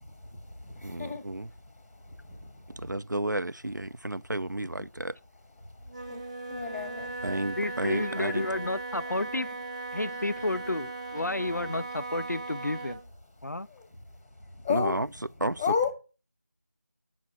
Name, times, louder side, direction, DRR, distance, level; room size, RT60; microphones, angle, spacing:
voice 1, 0.0-3.0 5.6-7.4 13.4-15.3 15.6-15.9, left 6 dB, 5° left, 4.5 m, -35 dB
voice 2, 0.8-1.5 2.8-5.2 7.2-8.5 14.7-15.1 15.4-15.6, right 1 dB, 90° right, 0.7 m, -32 dB
Wind instrument woodwind instrument, 5.9-13.1, right 3 dB, 25° right, 1.3 m, -38 dB
voice 3, 7.6-9.6 9.9-13.0 13.4-13.7, left 2 dB, 70° left, 0.5 m, -31 dB
9.3 x 6.0 x 8.1 m
figure-of-eight pair, 175°, 10 cm